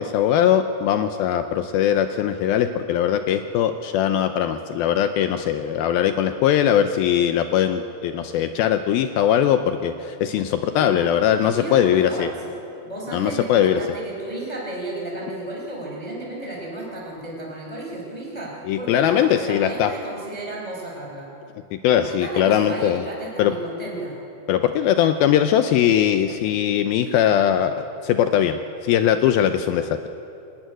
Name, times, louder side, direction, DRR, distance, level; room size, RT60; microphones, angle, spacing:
voice 1, 0.0-12.3 13.1-13.8 18.7-19.9 21.7-23.0 23.4-23.5 24.5-30.0, left 10 dB, 80° left, 8 dB, 2.3 m, -20 dB
voice 2, 11.4-12.5 12.8-21.3 21.9-24.1, right 1 dB, 10° left, -3 dB, 3.9 m, -33 dB
29.0 x 13.0 x 9.3 m, 2.8 s
omnidirectional pair, 4.7 m